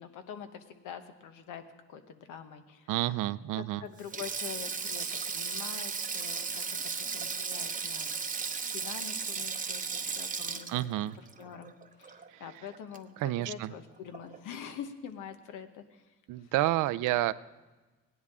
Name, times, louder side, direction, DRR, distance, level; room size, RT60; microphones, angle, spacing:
voice 1, 0.0-1.6 1.9-2.9 3.5-8.1 8.7-10.9 11.4-11.7 12.0-16.0 16.4-16.5, left 8 dB, 85° left, 8 dB, 1.0 m, -45 dB
voice 2, 2.9-3.8 10.7-11.2 12.3-12.4 13.2-13.7 16.3-17.3, right 15 dB, 85° right, 16 dB, 0.5 m, -29 dB
Sink (filling or washing), 4.0-12.5 12.7-13.0 14.1-14.4, right 5 dB, 25° right, 0.7 m, -36 dB
17.0 x 10.5 x 3.6 m, 1.2 s
cardioid pair, 90°, 30 cm